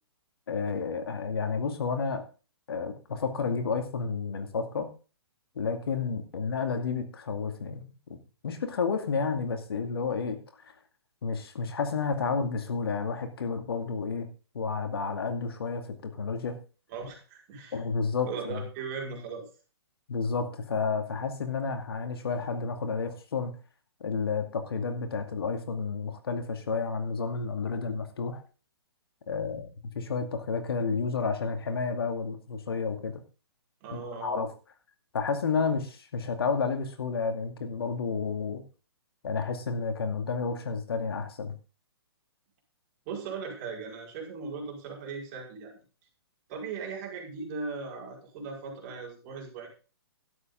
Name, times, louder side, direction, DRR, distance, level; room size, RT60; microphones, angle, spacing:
voice 1, 0.5-2.2 2.7-4.9 5.6-7.9 8.4-10.4 11.2-14.3 14.5-16.6 17.7-18.6 20.1-23.5 24.0-28.4 29.3-29.7 29.9-33.2 33.9-34.5 35.1-38.6 39.2-41.5, left 5 dB, 65° left, 7 dB, 2.3 m, -31 dB
voice 2, 16.9-17.8 18.2-19.5 33.8-34.4 43.1-45.8 46.5-49.7, right 5 dB, 35° right, 0 dB, 5.4 m, -38 dB
12.5 x 10.0 x 3.8 m, 0.34 s
hypercardioid pair, 130°, 14 cm